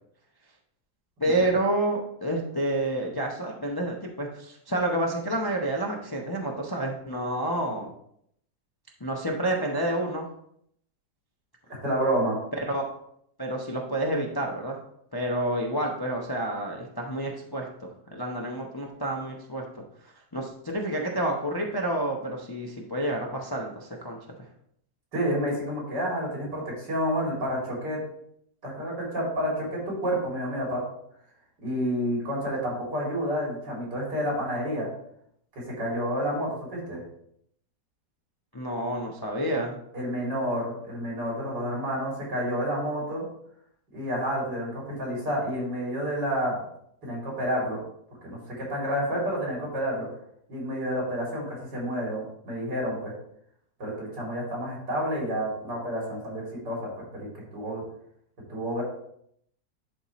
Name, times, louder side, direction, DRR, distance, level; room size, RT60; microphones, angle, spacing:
voice 1, 1.2-7.9 9.0-10.3 12.6-12.8 13.4-14.8 15.1-19.6 20.3-24.2 38.5-39.8, right 1 dB, 25° left, 0 dB, 0.4 m, -29 dB
voice 2, 11.7-12.4 25.1-28.0 28.6-30.8 31.6-34.9 35.7-37.0 39.9-43.2 43.9-46.6 47.0-47.8 48.2-50.1 50.5-53.1 53.8-57.8 58.5-58.8, equal, 90° right, -4 dB, 3.7 m, -29 dB
11.0 x 4.2 x 3.1 m, 0.72 s
omnidirectional pair, 1.8 m